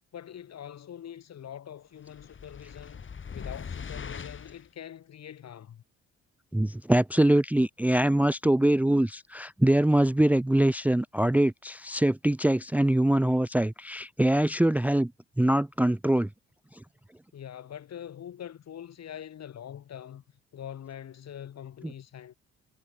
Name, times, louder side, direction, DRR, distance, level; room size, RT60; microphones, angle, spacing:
voice 1, 0.1-3.0 3.3-5.8 17.3-20.2 20.5-22.3, left 9 dB, 60° left, 2.9 m, -43 dB
sound 1, 2.1-4.7, left 6 dB, 40° left, 3.7 m, -41 dB
voice 2, 6.5-15.1 15.4-16.3, right 1 dB, 5° right, 0.6 m, -23 dB
cardioid pair, 90°, 30 cm